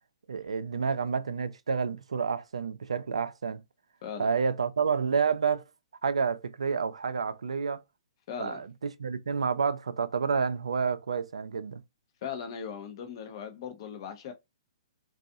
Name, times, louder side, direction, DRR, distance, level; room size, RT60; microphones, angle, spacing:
voice 1, 0.3-3.6 4.2-5.6 6.0-7.8 8.4-11.8, right 5 dB, 85° right, 0.4 m, -29 dB
voice 2, 8.3-8.6 12.2-14.3, left 7 dB, 50° left, 0.6 m, -38 dB
2.5 x 2.3 x 2.3 m
hypercardioid pair, 130°, 3 cm